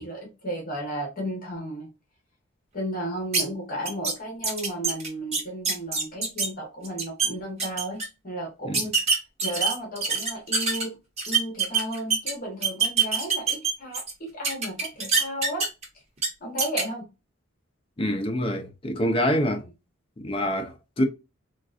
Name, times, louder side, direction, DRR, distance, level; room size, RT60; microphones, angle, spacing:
voice 1, 0.0-1.9 2.7-8.9 9.4-11.0 11.3-15.7 16.4-17.1, right 1 dB, 45° left, 1.2 m, -34 dB
sound 1, 3.3-3.4 3.9-4.1 4.4-6.5 6.8-7.3 7.6-8.1 8.7-10.8 11.2-12.3 12.6-14.1 14.4-15.8 16.2-16.3 16.6-16.8, right 5 dB, 35° right, 1.1 m, -24 dB
voice 2, 18.0-19.7 20.2-21.0, equal, 25° left, 0.6 m, -26 dB
3.8 x 2.4 x 2.4 m
head